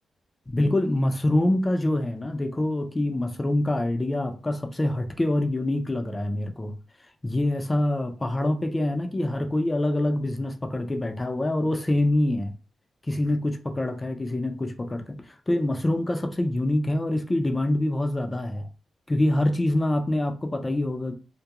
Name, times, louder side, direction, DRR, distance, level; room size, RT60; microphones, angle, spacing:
voice 1, 0.5-6.8 7.2-12.5 13.1-18.7 19.1-21.1, left 1 dB, 20° left, 0.5 m, -25 dB
2.3 x 2.2 x 2.8 m
cardioid pair, 75°, 0 cm